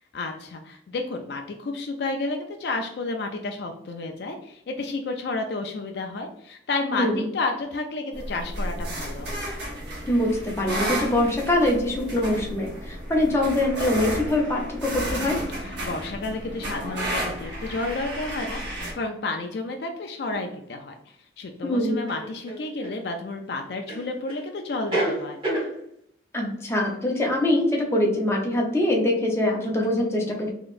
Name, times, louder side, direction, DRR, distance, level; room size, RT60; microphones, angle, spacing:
voice 1, 0.1-9.3 15.6-25.4, left 3 dB, 65° left, 4 dB, 0.4 m, -31 dB
voice 2, 6.9-7.2 10.1-15.4 21.6-22.0 26.3-30.5, left 1 dB, 15° left, -1 dB, 0.7 m, -23 dB
sound 1, 8.1-18.9, equal, 70° right, 1.1 m, -32 dB
sound 2, 20.3-20.4 22.1-23.0 23.9-24.4 24.7-25.7, right 1 dB, 30° right, 1.3 m, -28 dB
4.0 x 2.9 x 2.5 m, 0.74 s
head